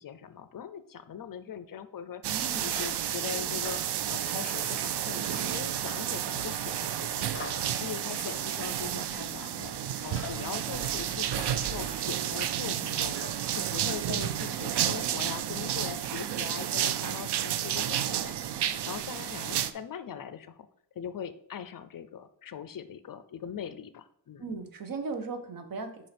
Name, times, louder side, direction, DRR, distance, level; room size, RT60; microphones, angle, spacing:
voice 1, 0.0-9.8 10.0-18.4 18.6-20.7 21.0-24.5, left 8 dB, 50° left, 12 dB, 0.5 m, -41 dB
sound 1, 2.2-19.7, right 10 dB, 70° right, 0.6 m, -31 dB
voice 2, 2.3-2.6 24.4-26.1, right 4 dB, 50° right, 7 dB, 1.1 m, -37 dB
sound 2, 2.5-14.4, left 5 dB, 30° left, 1.1 m, -49 dB
5.5 x 4.4 x 5.0 m, 0.70 s
cardioid pair, 100°, 43 cm